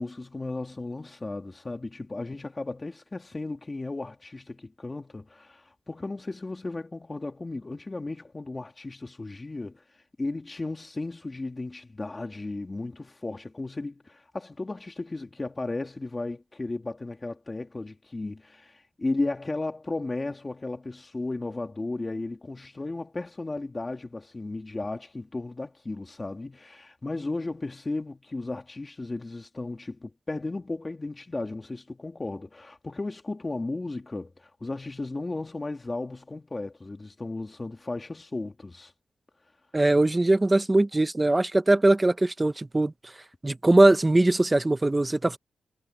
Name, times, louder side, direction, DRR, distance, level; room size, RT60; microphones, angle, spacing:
voice 1, 0.0-38.9, left 2 dB, 25° left, 2.2 m, -35 dB
voice 2, 39.7-42.9 43.4-45.4, right 2 dB, 20° right, 0.9 m, -21 dB
cardioid pair, 95°, 0 cm